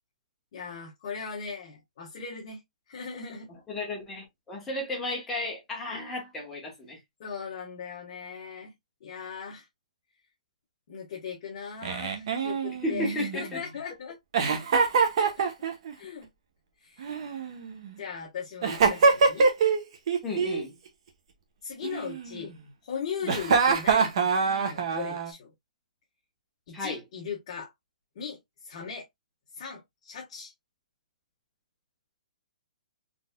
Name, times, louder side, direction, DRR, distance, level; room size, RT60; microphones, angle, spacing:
voice 1, 0.5-2.6 2.9-3.5 7.2-8.7 9.0-9.7 10.9-14.2 15.2-15.4 16.0-16.3 16.8-17.2 18.0-19.5 21.6-22.5 22.8-24.1 24.4-25.5 26.7-27.7 28.1-29.1 29.5-30.5, left 6 dB, 35° left, 1.2 m, -38 dB
voice 2, 3.7-7.0 12.8-13.3 13.5-13.6 20.2-20.7 26.7-27.0, left 1 dB, 5° left, 1.1 m, -33 dB
Giggle, 11.8-13.6 14.3-15.9 17.0-17.9 18.6-19.8 20.1-20.6 21.8-22.6 23.2-25.3, right 5 dB, 45° right, 1.0 m, -25 dB
4.1 x 3.3 x 2.2 m
hypercardioid pair, 175°, 4 cm